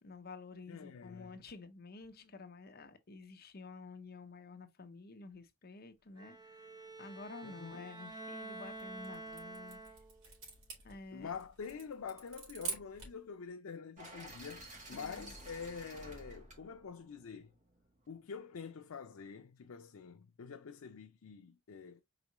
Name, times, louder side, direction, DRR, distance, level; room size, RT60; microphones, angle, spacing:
voice 1, 0.0-6.6 7.0-9.8 10.8-11.3 14.9-15.3, left 3 dB, 50° left, 0.8 m, -50 dB
voice 2, 0.7-1.4 7.4-7.9 11.1-17.5 18.1-22.0, left 6 dB, 85° left, 0.5 m, -46 dB
Bowed string instrument, 6.2-10.3, right 2 dB, 20° right, 0.7 m, -48 dB
sound 1, 8.6-13.3, right 4 dB, 90° right, 3.5 m, -47 dB
sound 2, 14.0-18.0, right 1 dB, 35° right, 1.6 m, -52 dB
5.0 x 3.6 x 2.9 m
head